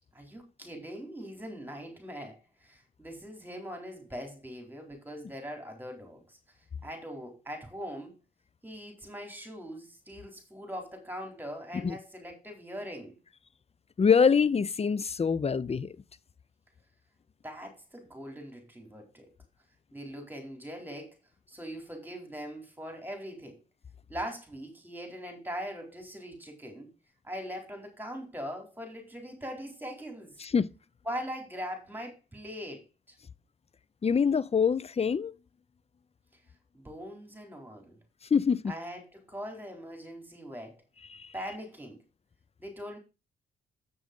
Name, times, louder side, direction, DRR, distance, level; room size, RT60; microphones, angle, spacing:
voice 1, 0.1-6.4 6.8-8.1 8.6-13.2 17.4-19.3 19.9-21.2 21.5-23.6 24.1-26.9 27.2-30.4 31.1-33.2 36.7-38.0 38.7-40.7 41.3-42.0 42.6-43.0, equal, 10° right, 4.0 m, -41 dB
voice 2, 14.0-16.0 30.4-30.7 34.0-35.3 38.3-38.7 41.1-41.3, left 6 dB, 30° left, 0.6 m, -25 dB
7.8 x 6.3 x 5.3 m
supercardioid pair, 55°, 20 cm